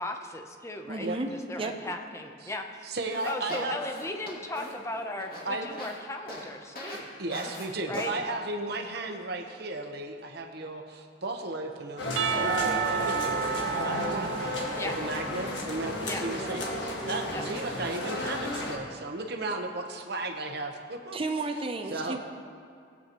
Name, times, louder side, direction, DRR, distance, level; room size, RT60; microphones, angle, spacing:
voice 1, 0.0-2.9 3.2-7.1 7.9-8.2 14.8-14.9 16.0-16.2 17.3-17.4, left 2 dB, 15° left, 4 dB, 0.8 m, -37 dB
voice 2, 0.9-2.0 13.9-14.3 21.1-22.2, right 2 dB, 30° right, 5 dB, 0.6 m, -33 dB
voice 3, 2.8-3.8 5.5-5.7 6.9-21.2 21.9-22.2, right 2 dB, 60° right, 4 dB, 1.0 m, -35 dB
sound 1, 3.1-6.0 6.3-6.4 6.8-7.0 7.3-7.7 7.9-8.1, left 1 dB, 55° left, 2.5 m, -40 dB
sound 2, 12.0-18.8, left 1 dB, 85° left, 1.6 m, -33 dB
Percussion / Church bell, 12.2-15.8, right 8 dB, 85° right, 0.4 m, -32 dB
18.0 x 8.4 x 3.0 m, 2.4 s
head